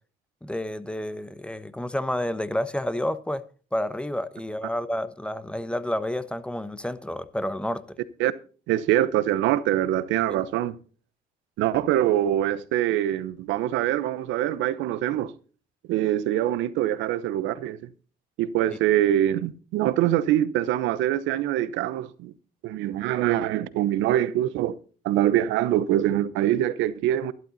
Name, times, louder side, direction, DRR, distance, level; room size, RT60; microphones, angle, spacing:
voice 1, 0.4-3.4 3.7-7.8, left 1 dB, 5° left, 1.1 m, -30 dB
voice 2, 8.7-10.8 11.6-15.3 15.9-17.9 18.4-22.3 22.6-24.8 25.0-27.3, right 12 dB, 80° right, 1.0 m, -24 dB
12.5 x 11.5 x 4.1 m
supercardioid pair, 80°, 19 cm